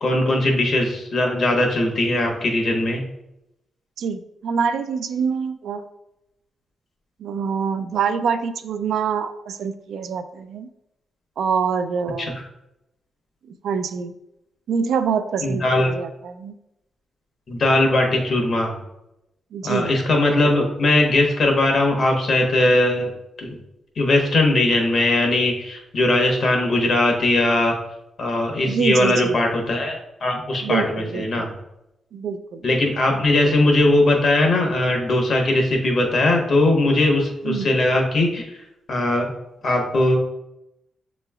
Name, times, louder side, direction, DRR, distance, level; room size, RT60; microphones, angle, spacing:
voice 1, 0.0-3.0 12.2-12.3 15.4-15.9 17.5-18.8 19.6-23.1 23.4-23.6 24.0-27.8 28.2-31.5 32.6-38.6 38.9-39.3 39.6-40.2, left 2 dB, 55° left, 1 dB, 1.0 m, -19 dB
voice 2, 4.0-5.8 7.2-10.7 11.4-12.4 13.6-14.1 14.7-16.5 19.5-19.9 28.7-29.4 30.6-31.5 32.1-32.7 37.4-37.7, right 6 dB, 80° right, 10 dB, 0.3 m, -25 dB
6.6 x 3.0 x 2.3 m, 0.87 s
cardioid pair, 105°, 0 cm